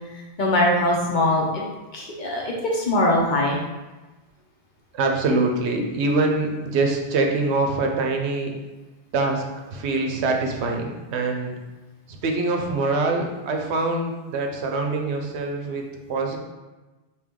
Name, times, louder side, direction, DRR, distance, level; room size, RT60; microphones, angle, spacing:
voice 1, 0.1-1.6 1.9-3.6, left 1 dB, 50° left, -2 dB, 0.7 m, -22 dB
voice 2, 4.9-8.5 9.1-11.6 12.1-16.4, right 3 dB, 80° right, 2 dB, 0.9 m, -24 dB
3.5 x 2.7 x 3.5 m, 1.2 s
omnidirectional pair, 1.1 m